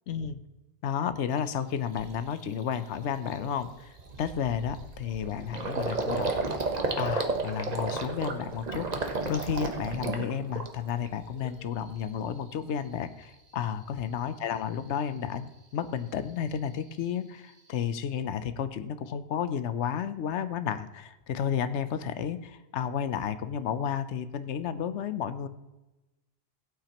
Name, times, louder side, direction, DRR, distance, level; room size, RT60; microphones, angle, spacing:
voice 1, 0.1-0.4 0.8-3.9 4.2-6.3 7.0-9.0 9.3-25.5, left 8 dB, 80° left, 12 dB, 1.0 m, -32 dB
Gurgling, 1.4-1.5 2.0-2.2 2.6-2.8 3.0-11.1 11.4-12.0, right 3 dB, 40° right, 1.0 m, -33 dB
16.5 x 8.9 x 2.9 m, 1.0 s
omnidirectional pair, 1.2 m